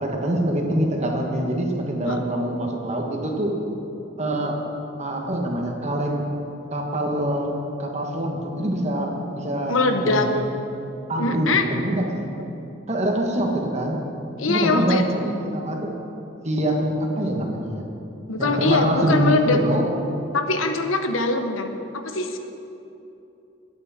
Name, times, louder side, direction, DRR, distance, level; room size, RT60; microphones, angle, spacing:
voice 1, 0.0-3.6 4.2-4.6 5.0-7.5 7.8-10.4 11.1-12.3 12.9-14.0 14.5-16.0 16.4-17.8 18.4-19.9, right 1 dB, 35° right, 1 dB, 1.5 m, -25 dB
voice 2, 9.7-10.3 11.2-11.7 14.4-15.0 18.3-19.6 20.3-22.4, left 3 dB, 85° left, 6 dB, 1.0 m, -22 dB
20.5 x 8.4 x 4.3 m, 2.8 s
head